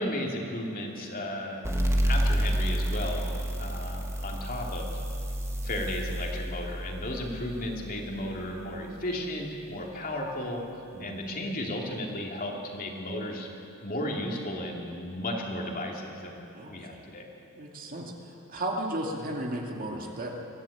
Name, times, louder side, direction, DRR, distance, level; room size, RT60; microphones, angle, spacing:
voice 1, 0.0-1.6 2.0-3.3 3.6-4.9 5.6-10.6 11.0-13.5 13.8-17.3, left 1 dB, 40° left, 0 dB, 2.8 m, -34 dB
sound 1, 1.6-8.9, equal, 15° right, 1.7 m, -30 dB
voice 2, 16.5-17.1 17.6-20.3, right 1 dB, 40° right, 0 dB, 2.3 m, -35 dB
23.0 x 15.0 x 8.6 m, 2.9 s
head